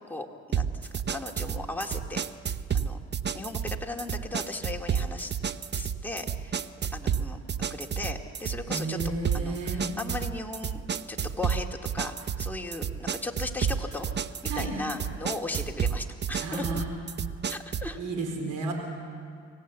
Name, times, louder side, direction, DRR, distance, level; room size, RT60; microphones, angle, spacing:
voice 1, 0.1-2.3 2.7-3.0 3.3-5.3 5.7-6.6 6.9-7.4 7.7-9.0 9.3-14.1 14.5-16.6 17.5-18.0, left 2 dB, 5° left, 1 dB, 2.2 m, -37 dB
sound 1, 0.5-18.0, right 7 dB, 35° right, 0.8 m, -31 dB
voice 2, 8.7-9.8 14.5-14.8 16.4-16.8 18.0-18.7, right 3 dB, 90° right, 3 dB, 4.1 m, -32 dB
26.5 x 18.0 x 8.3 m, 2.2 s
cardioid pair, 90°, 30 cm